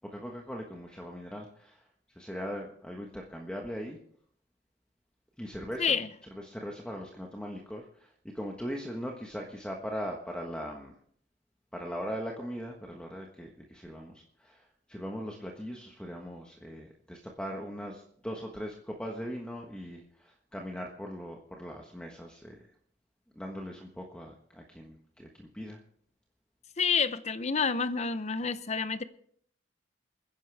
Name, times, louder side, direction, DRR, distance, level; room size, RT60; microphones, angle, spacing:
voice 1, 0.1-1.8 2.1-4.0 5.4-6.0 6.3-10.9 11.7-22.6 23.3-25.8, equal, 5° left, 0 dB, 1.3 m, -40 dB
voice 2, 5.8-6.1 26.8-29.0, left 5 dB, 35° left, 13 dB, 0.7 m, -28 dB
28.5 x 10.5 x 3.5 m, 0.63 s
head